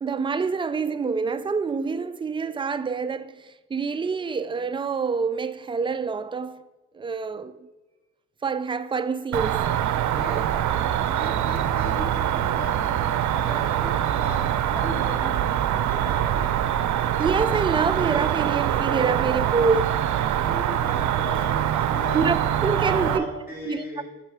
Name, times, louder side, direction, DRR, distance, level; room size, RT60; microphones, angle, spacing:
voice 1, 0.0-6.6 6.9-7.6 8.4-9.7 10.3-10.6 17.2-20.0 22.1-23.3 23.6-23.9, right 5 dB, 15° right, 0.3 m, -26 dB
Cricket, 9.3-23.2, right 10 dB, 70° right, 0.6 m, -24 dB
voice 2, 10.0-10.7 11.0-16.6 20.4-24.0, left 1 dB, 30° left, 2.8 m, -38 dB
6.5 x 6.3 x 4.8 m
cardioid pair, 90°, 30 cm